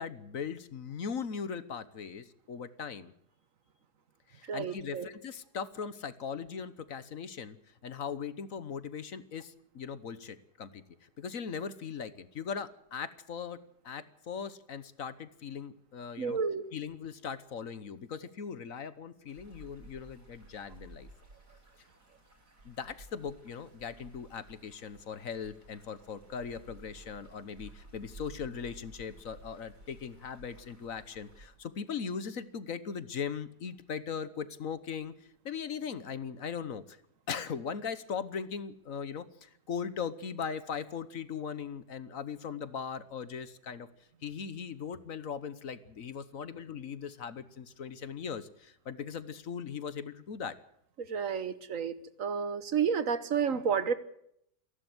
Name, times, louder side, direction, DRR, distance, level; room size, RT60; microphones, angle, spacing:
voice 1, 0.0-3.1 4.3-7.6 7.8-10.8 11.2-16.4 16.7-21.1 22.6-35.1 35.4-37.0 37.3-43.9 44.2-50.5, left 6 dB, 60° left, 14 dB, 1.4 m, -39 dB
voice 2, 4.4-5.1 16.2-16.7 51.0-53.9, right 6 dB, 55° right, 13 dB, 1.5 m, -31 dB
sound 1, 19.3-31.5, right 1 dB, 80° right, 6.6 m, -54 dB
28.5 x 11.5 x 7.9 m, 0.74 s
omnidirectional pair, 1.7 m